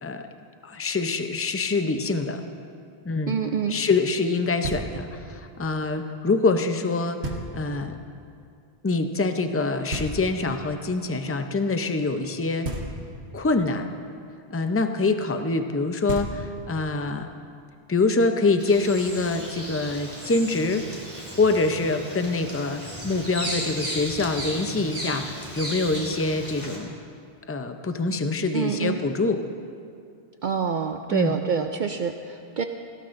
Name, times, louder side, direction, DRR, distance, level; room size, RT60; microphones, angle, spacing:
voice 1, 0.6-2.4 3.0-3.4 3.7-8.0 8.8-12.7 13.3-13.8 14.5-17.3 17.9-20.9 21.4-26.9 27.5-29.4 31.1-31.4, left 3 dB, 20° left, 7 dB, 0.4 m, -25 dB
voice 2, 3.3-3.8 28.5-29.0 30.4-32.6, right 6 dB, 55° right, 6 dB, 0.6 m, -26 dB
Knock, 4.6-5.3 7.2-7.9 9.9-10.7 12.6-13.4 15.7-15.8 16.1-16.9, right 1 dB, 85° right, 1.6 m, -34 dB
Bird vocalization bird call bird song, 18.6-26.8, equal, 10° right, 2.7 m, -35 dB
18.0 x 16.5 x 2.6 m, 2.4 s
omnidirectional pair, 1.1 m